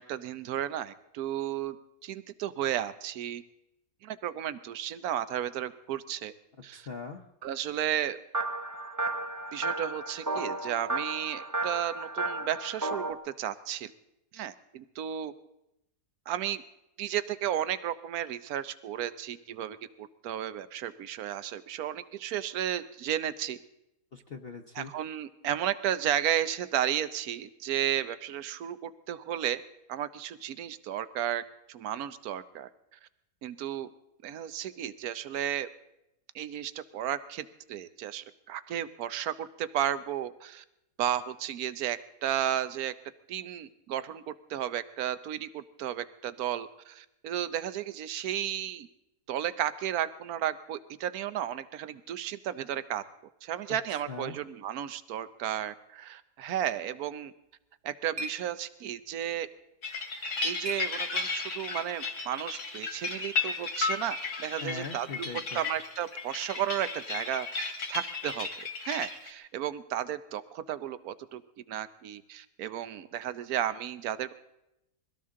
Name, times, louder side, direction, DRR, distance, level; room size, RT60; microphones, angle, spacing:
voice 1, 0.0-1.8 2.0-3.4 4.0-6.3 6.6-6.9 7.4-8.2 9.5-13.9 14.3-15.3 16.3-16.6 17.0-23.6 24.7-29.6 29.9-31.4 31.7-32.7 33.4-33.9 34.2-35.7 36.3-40.6 41.0-42.9 43.3-48.9 49.3-53.0 53.4-57.3 57.8-59.5 60.4-65.3 65.5-71.4 71.7-74.3, right 11 dB, 70° right, 13 dB, 1.2 m, -33 dB
voice 2, 6.7-7.2 24.1-24.9 54.1-54.4 64.6-65.6, left 4 dB, 45° left, 4 dB, 0.9 m, -40 dB
sound 1, 8.3-13.1, right 2 dB, 20° right, 0.5 m, -33 dB
sound 2, 57.4-61.6, equal, 45° right, 1.5 m, -45 dB
sound 3, 59.8-69.3, left 4 dB, 80° left, 2.6 m, -34 dB
22.5 x 17.0 x 3.7 m, 0.88 s
omnidirectional pair, 1.7 m